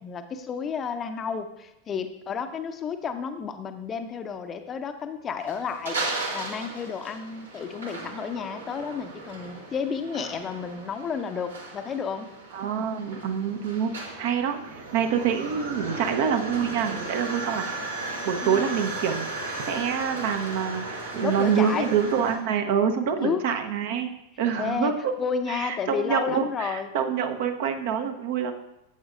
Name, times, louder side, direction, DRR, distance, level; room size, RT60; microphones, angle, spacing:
voice 1, 0.0-6.0 6.3-12.3 18.4-18.8 21.2-21.9 23.2-23.4 24.6-24.9 25.2-26.9, left 6 dB, 25° left, 8 dB, 0.6 m, -31 dB
sound 1, 5.4-22.4, right 3 dB, 75° right, 1.7 m, -36 dB
voice 2, 12.5-17.6 18.0-24.1 24.4-25.1 25.5-28.5, right 7 dB, 50° right, 7 dB, 0.8 m, -26 dB
12.5 x 7.9 x 2.5 m, 0.87 s
figure-of-eight pair, 90°, 0 cm